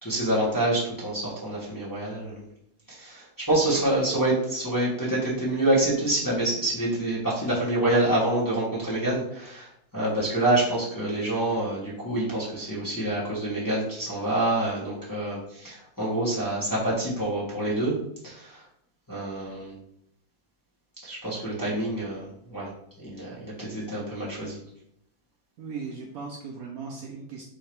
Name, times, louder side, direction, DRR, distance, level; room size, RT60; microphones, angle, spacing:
voice 1, 0.0-2.5 2.9-18.0 18.2-18.6 19.1-19.8 21.0-22.7 23.0-24.6, right 1 dB, 15° left, -7 dB, 1.0 m, -27 dB
voice 2, 25.6-27.4, right 5 dB, 90° right, 0 dB, 0.8 m, -37 dB
3.7 x 2.8 x 4.6 m, 0.73 s
omnidirectional pair, 2.2 m